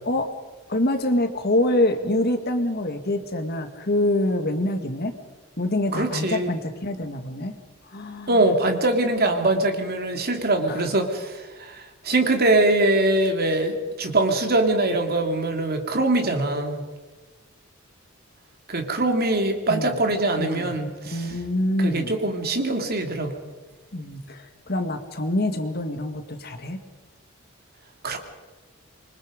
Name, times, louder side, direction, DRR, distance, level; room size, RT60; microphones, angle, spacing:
voice 1, 0.7-5.2 5.6-7.6 7.9-8.3 10.7-10.8 19.7-20.0 20.4-20.7 21.1-22.1 23.9-26.8, left 1 dB, 50° left, 6 dB, 2.1 m, -25 dB
voice 2, 5.9-6.5 8.3-16.8 18.7-21.3 21.8-23.3 28.0-28.2, right 2 dB, 45° right, 4 dB, 3.0 m, -23 dB
27.0 x 24.0 x 5.3 m, 1.3 s
head